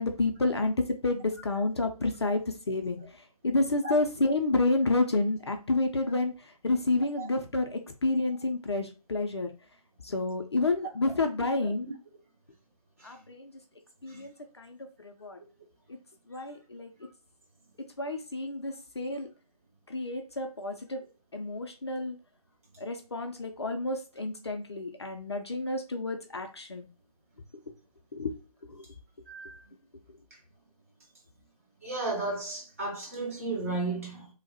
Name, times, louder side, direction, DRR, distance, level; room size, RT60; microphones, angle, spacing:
voice 1, 0.0-3.0 3.4-6.3 6.6-9.5 10.0-11.9 13.0-13.5 14.0-14.8 15.0-15.4 16.3-16.9 18.0-19.3 19.9-21.0 21.3-22.2 22.8-26.9 28.1-28.3 28.7-28.8, left 2 dB, 45° left, 0.4 m, -29 dB
voice 2, 29.3-29.6 31.8-34.3, right 3 dB, 20° right, 0.7 m, -34 dB
3.2 x 2.0 x 2.7 m
figure-of-eight pair, 155°, 19 cm